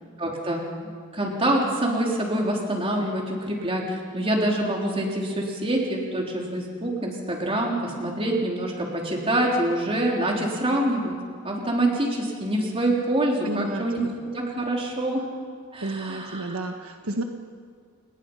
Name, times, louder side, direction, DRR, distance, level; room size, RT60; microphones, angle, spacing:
voice 1, 0.2-0.6 1.1-11.1 11.4-14.1 14.3-15.3 15.7-16.6, right 1 dB, 25° right, -1 dB, 4.0 m, -25 dB
voice 2, 13.4-14.1 15.8-17.2, right 2 dB, 75° right, 4 dB, 1.4 m, -31 dB
29.0 x 20.0 x 5.7 m, 2.1 s
head